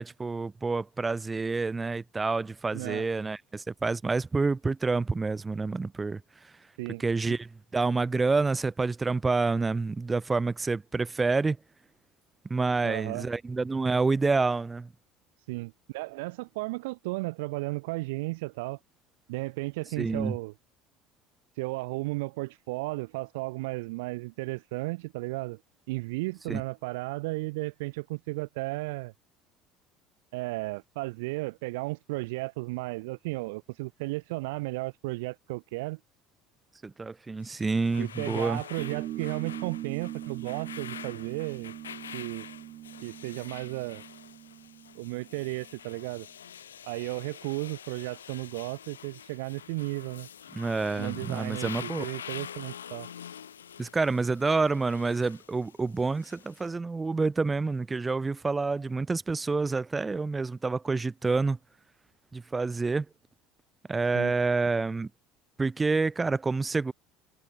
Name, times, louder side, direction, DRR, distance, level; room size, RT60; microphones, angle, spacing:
voice 1, 0.0-6.5 7.0-11.6 12.5-14.9 20.0-20.4 26.5-26.6 36.8-38.6 50.5-52.1 53.8-61.6 62.3-63.1 63.9-65.1 65.6-66.9, right 3 dB, 20° right, 0.5 m, -28 dB
voice 2, 2.7-3.1 6.8-7.0 12.8-13.3 15.5-18.8 19.3-20.5 21.6-25.6 25.9-29.1 30.3-36.0 38.0-41.7 42.1-42.5 43.0-44.0 45.0-46.3 46.8-50.3 51.0-53.1 64.1-64.3, right 23 dB, 75° right, 0.6 m, -34 dB
sound 1, 37.4-56.7, left 8 dB, 90° left, 7.4 m, -46 dB
sound 2, 38.8-45.7, right 14 dB, 55° right, 4.3 m, -41 dB
hypercardioid pair, 70°, 0 cm